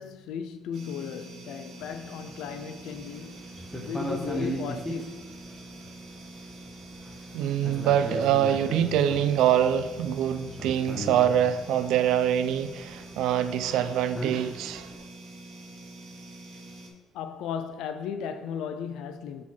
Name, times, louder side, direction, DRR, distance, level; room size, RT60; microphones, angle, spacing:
voice 1, 0.0-3.5 3.8-5.3 16.5-16.6 17.1-19.4, left 7 dB, 80° left, 0.3 m, -36 dB
sound 1, 0.7-16.9, right 2 dB, 55° right, 0.9 m, -45 dB
sound 2, 1.8-15.0, equal, 5° left, 0.7 m, -38 dB
voice 2, 7.3-14.9, right 10 dB, 80° right, 0.4 m, -24 dB
4.6 x 4.2 x 5.5 m
cardioid pair, 175°, 0 cm